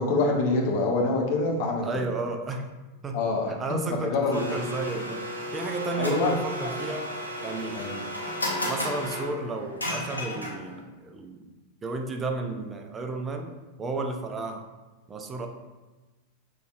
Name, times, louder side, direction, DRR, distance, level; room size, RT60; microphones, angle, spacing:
voice 1, 0.0-2.0 3.1-3.5 4.0-4.4 6.0-6.3 6.6-6.7 7.8-7.9, left 3 dB, 50° left, 0 dB, 0.9 m, -25 dB
voice 2, 1.8-2.7 3.0-3.2 3.5-5.2 5.5-7.1 7.4-7.8 8.6-11.5 11.8-14.7 15.1-15.5, right 3 dB, 20° right, 4 dB, 0.5 m, -33 dB
Domestic sounds home sounds, 4.3-10.8, left 1 dB, 85° left, 0.8 m, -33 dB
6.1 x 3.4 x 2.4 m, 1.2 s
figure-of-eight pair, 90°, 0 cm